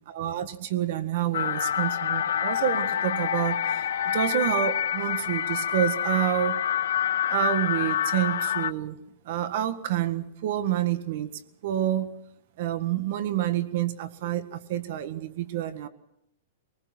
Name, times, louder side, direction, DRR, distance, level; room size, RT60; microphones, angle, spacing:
voice 1, 0.1-6.6 7.3-9.0 9.2-11.3 11.6-12.1 12.6-15.9, right 11 dB, 50° right, 10 dB, 1.6 m, -28 dB
sound 1, 1.3-8.7, left 10 dB, 80° left, 0.9 m, -27 dB
23.0 x 20.0 x 6.1 m, 0.78 s
supercardioid pair, 170°, 0 cm